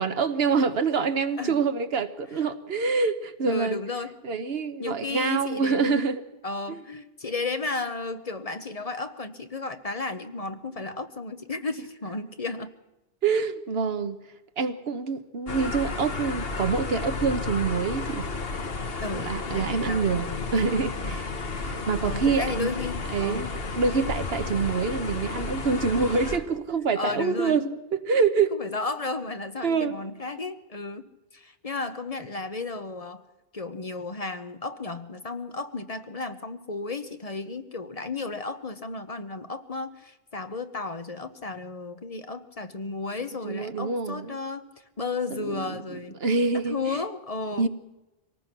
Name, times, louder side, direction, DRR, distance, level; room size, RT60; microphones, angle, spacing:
voice 1, 0.0-3.8 4.2-6.2 6.7-6.8 13.2-14.2 14.6-18.3 19.1-20.3 20.5-21.4 21.6-22.7 23.1-28.5 29.6-29.9 43.4-44.4 45.4-45.8 46.2-46.8 47.6-47.7, right 5 dB, 75° right, 1.3 m, -26 dB
voice 2, 3.5-4.1 4.8-6.0 6.4-12.7 19.0-20.4 21.0-21.2 22.0-23.5 27.0-27.7 28.5-33.2 33.5-46.2 46.5-47.7, left 3 dB, 40° left, 1.0 m, -34 dB
sound 1, 15.5-26.4, left 3 dB, 70° left, 1.6 m, -32 dB
24.5 x 18.5 x 6.0 m
omnidirectional pair, 1.0 m